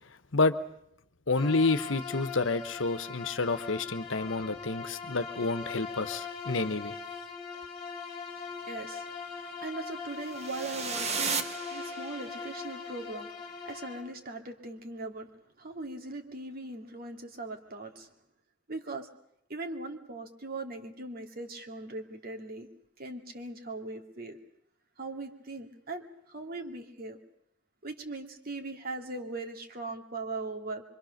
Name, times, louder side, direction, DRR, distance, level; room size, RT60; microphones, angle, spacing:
voice 1, 1.3-6.9, left 3 dB, 80° left, 11 dB, 1.2 m, -29 dB
Bowed string instrument, 1.3-14.1, left 5 dB, 25° left, 2.8 m, -41 dB
voice 2, 8.3-13.3 13.6-15.3 15.6-18.1 18.7-19.1 19.5-22.7 23.0-24.4 25.0-27.2 27.8-30.8, right 2 dB, 50° right, 4 dB, 2.5 m, -40 dB
sound 1, 10.3-12.5, right 5 dB, 35° right, 1.5 m, -34 dB
25.0 x 25.0 x 6.6 m, 0.74 s
head